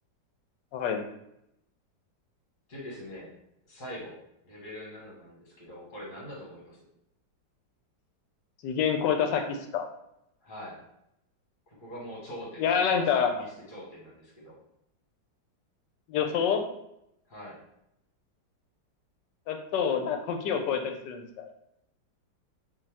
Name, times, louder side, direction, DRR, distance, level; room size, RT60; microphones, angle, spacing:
voice 1, 2.7-3.4 3.6-4.2 4.4-6.9 10.4-10.8 11.7-14.6 17.3-17.6, equal, 30° left, -4 dB, 1.3 m, -44 dB
voice 2, 8.6-9.9 12.6-13.3 16.1-16.6 19.5-21.5, left 7 dB, 75° left, 5 dB, 1.2 m, -27 dB
4.6 x 2.9 x 3.5 m, 0.80 s
omnidirectional pair, 2.0 m